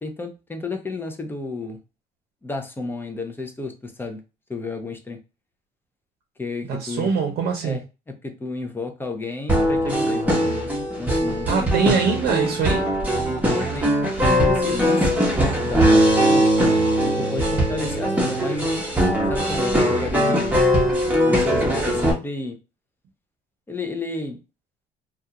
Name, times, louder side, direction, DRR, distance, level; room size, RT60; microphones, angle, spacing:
voice 1, 0.0-1.8 2.4-4.2 4.5-5.2 6.4-7.1 7.6-7.8 8.2-10.7 11.0-12.2 13.4-13.9 14.2-15.2 15.6-16.5 17.0-18.8 19.3-20.6 21.3-22.6 23.7-24.4, left 3 dB, 10° left, 5 dB, 0.5 m, -32 dB
voice 2, 6.7-7.8 11.5-12.9, right 5 dB, 65° right, 2 dB, 0.7 m, -23 dB
sound 1, 9.5-22.1, equal, 10° right, 0.9 m, -20 dB
2.3 x 2.3 x 2.7 m, 0.30 s
cardioid pair, 110°, 17 cm